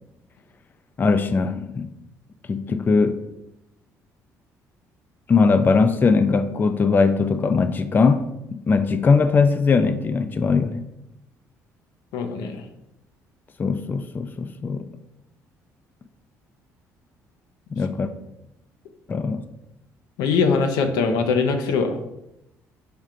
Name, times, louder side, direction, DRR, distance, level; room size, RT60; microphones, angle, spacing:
voice 1, 1.0-1.9 2.5-3.2 5.3-8.3 8.5-10.8 13.6-14.9 17.7-18.1 19.1-19.4, left 4 dB, 30° left, 10 dB, 0.3 m, -20 dB
voice 2, 12.1-12.6 20.2-22.0, left 5 dB, 80° left, 6 dB, 0.5 m, -22 dB
5.1 x 2.4 x 4.3 m, 0.87 s
supercardioid pair, 80°, 7 cm